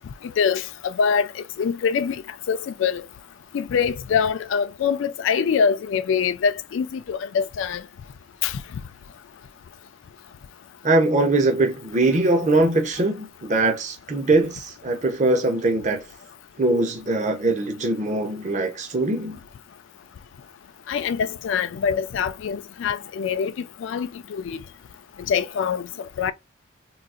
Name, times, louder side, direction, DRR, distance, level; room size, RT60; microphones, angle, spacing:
voice 1, 0.4-1.3 1.6-2.2 2.5-3.1 3.5-7.8 8.4-8.6 20.9-23.5 23.8-24.6 25.3-25.9 26.2-26.3, left 6 dB, 65° left, 0.3 m, -24 dB
voice 2, 10.8-16.0 16.6-19.4, right 2 dB, 35° right, 0.7 m, -22 dB
3.9 x 2.4 x 2.3 m
head